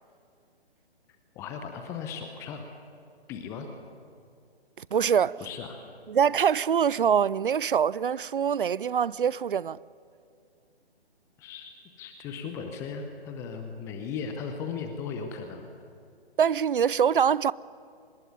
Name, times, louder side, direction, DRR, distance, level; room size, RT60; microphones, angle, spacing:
voice 1, 1.3-2.7 3.3-3.7 5.4-5.8 11.4-11.7 12.0-15.7, left 6 dB, 10° left, 0.8 m, -37 dB
voice 2, 4.8-5.4 6.1-9.8 16.4-17.5, right 7 dB, 55° right, 0.6 m, -24 dB
25.5 x 20.0 x 9.4 m
figure-of-eight pair, 140°, 32 cm